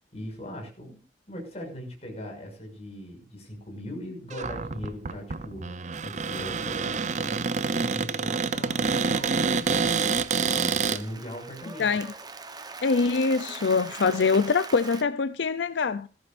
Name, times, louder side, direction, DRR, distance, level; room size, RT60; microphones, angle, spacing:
voice 1, 0.1-5.7 6.0-11.9, equal, 40° left, 6.0 m, -40 dB
Cupboard open or close, 4.3-11.0, right 5 dB, 40° right, 0.6 m, -27 dB
Applause, 8.8-15.0, right 4 dB, 25° right, 1.0 m, -42 dB
voice 2, 11.8-12.1 12.8-16.1, left 4 dB, 85° left, 0.6 m, -24 dB
18.5 x 14.0 x 2.6 m
head